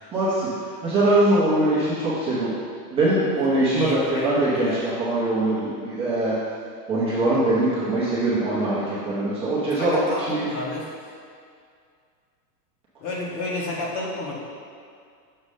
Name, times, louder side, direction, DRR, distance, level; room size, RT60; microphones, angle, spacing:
voice 1, 0.1-0.5 0.8-2.5 2.9-6.4 6.9-10.0 10.3-10.5, right 2 dB, 10° right, -10 dB, 0.9 m, -22 dB
voice 2, 3.7-4.3 4.6-4.8 9.8-10.9 13.0-14.3, left 2 dB, 50° left, -4 dB, 1.6 m, -30 dB
6.9 x 6.5 x 3.3 m, 2.2 s
supercardioid pair, 170°, 48 cm